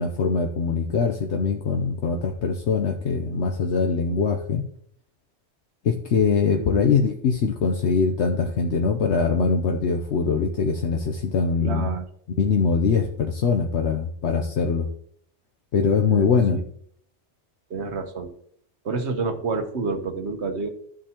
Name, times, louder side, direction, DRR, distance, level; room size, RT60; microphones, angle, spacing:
voice 1, 0.0-4.6 5.8-11.9 12.4-14.9 15.7-16.6, left 5 dB, 70° left, 3 dB, 1.1 m, -22 dB
voice 2, 11.6-12.0 16.1-16.6 17.7-18.3 18.8-20.7, right 4 dB, 70° right, 7 dB, 1.3 m, -28 dB
12.0 x 7.6 x 2.9 m, 0.65 s
omnidirectional pair, 1.2 m